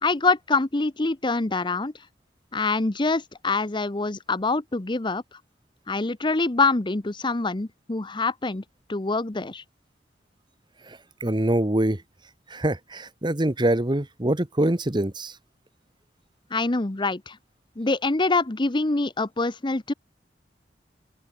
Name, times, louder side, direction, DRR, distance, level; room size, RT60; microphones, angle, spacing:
voice 1, 0.0-1.9 2.5-5.2 5.9-8.6 8.9-9.6 16.5-17.4 17.8-19.9, left 3 dB, 25° left, 0.9 m, -25 dB
voice 2, 10.8-12.0 12.5-15.4, right 1 dB, 25° right, 1.4 m, -24 dB
open air
head